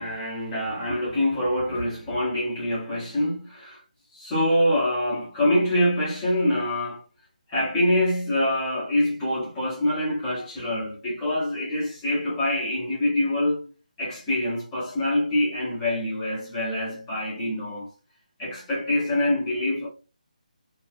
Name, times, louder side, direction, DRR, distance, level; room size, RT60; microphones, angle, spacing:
voice 1, 0.0-3.8 4.1-7.0 7.5-13.6 14.0-17.9 18.4-19.9, left 1 dB, 5° left, 0.7 m, -25 dB
2.6 x 2.3 x 3.3 m
hypercardioid pair, 180°, 4 cm